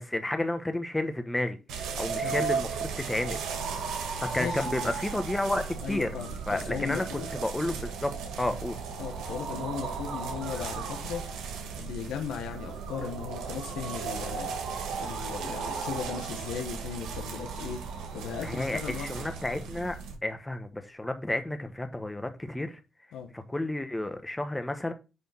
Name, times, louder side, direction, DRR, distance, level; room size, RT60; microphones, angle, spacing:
voice 1, 0.0-3.4 4.2-6.1 6.5-8.1 8.4-8.8 18.4-22.8 23.3-24.9, left 1 dB, 10° left, 1.1 m, -31 dB
sound 1, 1.7-20.2, right 5 dB, 85° right, 1.6 m, -35 dB
voice 2, 4.3-4.9 5.8-7.3 9.0-11.2 11.8-14.5 15.0-17.8 18.1-19.2 23.1-23.3, left 7 dB, 85° left, 1.1 m, -37 dB
9.7 x 3.4 x 4.2 m
cardioid pair, 90°, 0 cm